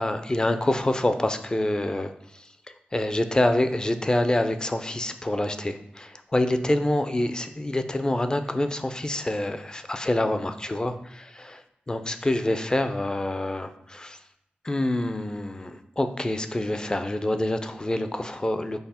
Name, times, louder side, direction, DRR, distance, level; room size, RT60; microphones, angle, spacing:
voice 1, 0.0-2.1 2.7-14.2 14.6-18.8, left 1 dB, 20° left, 9 dB, 0.4 m, -26 dB
5.5 x 2.1 x 4.2 m, 0.84 s
cardioid pair, 65°, 4 cm